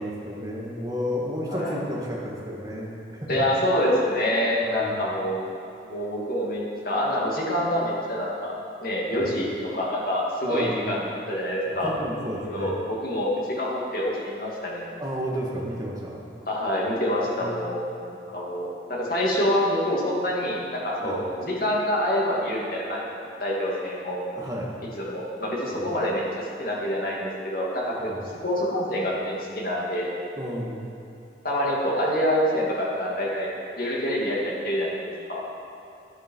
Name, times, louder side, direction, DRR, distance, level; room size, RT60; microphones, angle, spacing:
voice 1, 0.0-3.4 4.6-5.1 9.1-9.3 10.4-11.0 11.7-12.7 15.0-16.3 17.2-17.7 21.0-21.2 24.3-24.8 25.7-25.8 28.0-28.2 30.4-30.9, equal, 20° right, -4 dB, 1.8 m, -32 dB
voice 2, 1.5-1.8 3.3-5.5 5.8-8.5 8.8-11.9 12.5-14.9 16.5-17.8 18.1-24.2 25.0-28.1 28.4-30.1 31.4-33.5 33.8-35.4, equal, 55° left, -4 dB, 2.3 m, -26 dB
12.0 x 10.0 x 4.6 m, 2.7 s
head